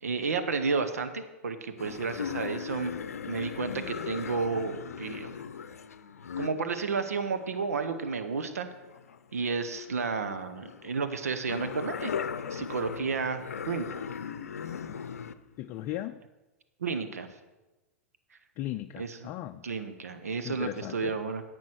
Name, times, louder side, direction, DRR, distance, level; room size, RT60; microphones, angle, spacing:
voice 1, 0.0-3.0 3.2-5.4 6.4-8.7 9.3-12.1 12.5-13.4 13.7-13.9 16.8-17.3 19.0-19.3 19.6-21.4, right 4 dB, 80° right, 9 dB, 1.1 m, -32 dB
sound 1, 1.8-9.5 9.8-15.3 15.8-16.0, left 7 dB, 80° left, 0.6 m, -38 dB
voice 2, 15.6-16.2 18.6-19.6 20.4-21.1, left 14 dB, 40° left, 7 dB, 0.5 m, -37 dB
10.5 x 8.3 x 6.4 m, 1.1 s
hypercardioid pair, 105°, 8 cm